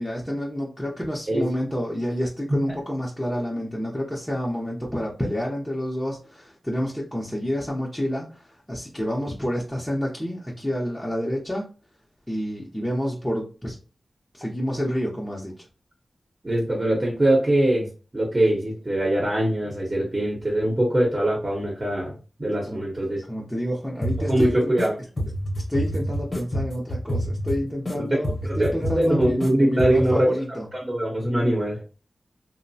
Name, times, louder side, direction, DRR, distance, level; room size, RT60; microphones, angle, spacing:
voice 1, 0.0-11.6 12.3-13.8 14.3-15.5 22.7-22.8 23.3-24.7 25.7-30.7, equal, 10° left, -4 dB, 0.7 m, -29 dB
voice 2, 16.4-17.9 18.1-23.2 24.3-24.9 27.9-28.2 28.5-30.3 30.8-31.8, right 1 dB, 35° right, -2 dB, 1.0 m, -22 dB
sound 1, 24.0-24.9 25.2-27.9 28.2-29.5 29.8-30.2, equal, 40° left, 0.9 m, -28 dB
2.8 x 2.0 x 2.7 m, 0.35 s
cardioid pair, 45°, 0 cm